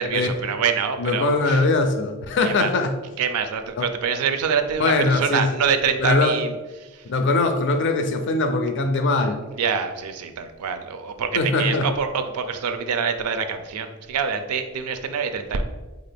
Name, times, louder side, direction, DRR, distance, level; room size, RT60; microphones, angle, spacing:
voice 1, 0.0-1.7 2.4-2.7 3.2-7.1 9.5-15.6, right 6 dB, 85° right, 8 dB, 0.4 m, -25 dB
voice 2, 1.0-2.9 3.8-3.9 4.8-5.5 6.0-6.3 7.0-9.4 11.4-11.9, left 3 dB, 55° left, 7 dB, 0.4 m, -21 dB
4.1 x 2.4 x 3.3 m, 1.2 s
head